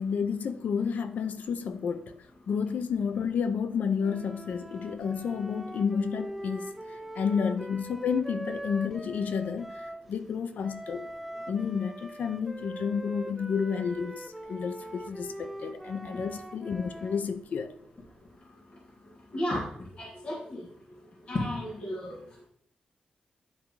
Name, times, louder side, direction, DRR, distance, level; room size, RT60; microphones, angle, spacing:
voice 1, 0.0-2.1 2.5-6.7 7.2-11.1 11.5-17.7, left 6 dB, 75° left, 0.6 m, -31 dB
sound 1, 4.0-10.1 10.6-17.3, right 1 dB, 5° right, 0.5 m, -42 dB
voice 2, 19.3-19.6 20.0-20.6 21.3-22.2, left 1 dB, 40° left, 1.7 m, -32 dB
9.6 x 3.6 x 4.7 m
wide cardioid pair, 115°, 3 cm